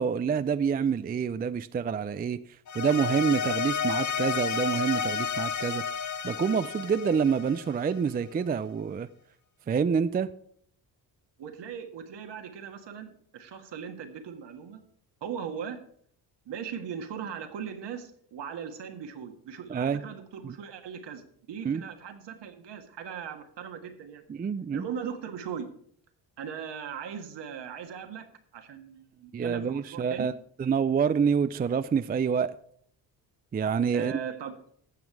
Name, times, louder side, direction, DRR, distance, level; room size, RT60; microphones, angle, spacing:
voice 1, 0.0-2.4 2.7-5.8 6.2-9.1 9.7-10.3 19.7-20.0 20.4-20.5 21.6-21.8 24.3-24.8 29.3-30.3 30.6-32.5 33.5-34.1, right 6 dB, 20° right, 13 dB, 0.4 m, -27 dB
sound 1, 2.7-8.0, left 6 dB, 40° left, 0.8 m, -31 dB
voice 2, 11.4-14.8 15.2-15.8 16.5-24.2 24.7-25.7 26.4-30.3 33.9-34.6, right 7 dB, 65° right, 6 dB, 1.7 m, -39 dB
12.5 x 7.1 x 4.7 m, 0.63 s
cardioid pair, 75°, 45 cm